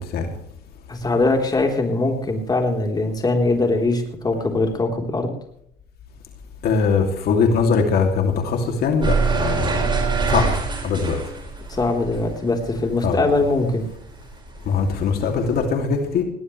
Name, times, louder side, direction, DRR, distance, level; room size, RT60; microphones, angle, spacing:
voice 1, 0.9-5.3 11.7-13.9, left 2 dB, 25° left, 2 dB, 3.9 m, -21 dB
voice 2, 6.6-9.8 10.3-10.5 10.8-11.2 13.0-13.3 14.7-16.2, left 5 dB, 70° left, 3 dB, 2.8 m, -21 dB
sound 1, 9.0-13.7 14.0-15.6, right 4 dB, 25° right, 5.5 m, -24 dB
20.5 x 18.5 x 3.3 m, 0.72 s
cardioid pair, 110°, 17 cm